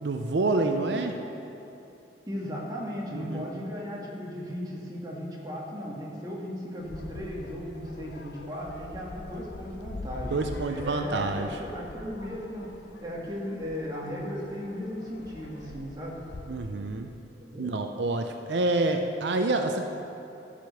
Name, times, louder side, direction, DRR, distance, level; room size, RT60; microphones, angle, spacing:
voice 1, 0.0-1.2 3.1-3.5 10.3-11.6 16.5-17.1 17.6-19.8, right 2 dB, 80° right, 5 dB, 0.5 m, -27 dB
voice 2, 2.3-12.7 13.0-16.2 17.4-17.7, equal, 20° right, -4 dB, 1.7 m, -36 dB
sound 1, 6.8-16.5, left 2 dB, 80° left, 0.7 m, -44 dB
13.0 x 5.1 x 6.7 m, 2.8 s
head